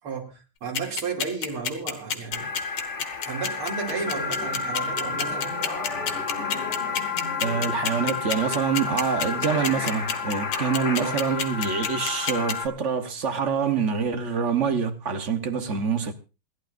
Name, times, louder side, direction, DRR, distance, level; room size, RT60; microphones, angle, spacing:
voice 1, 0.0-2.5 3.2-5.5 10.9-11.2, right 5 dB, 80° right, 3.5 m, -33 dB
sound 1, 0.7-12.5, left 7 dB, 85° left, 2.3 m, -28 dB
sound 2, 2.3-12.7, left 5 dB, 35° left, 2.0 m, -31 dB
sound 3, 3.9-10.4, left 1 dB, 25° right, 5.1 m, -40 dB
voice 2, 7.4-16.1, right 6 dB, 45° right, 1.1 m, -26 dB
28.0 x 11.5 x 2.5 m
omnidirectional pair, 2.4 m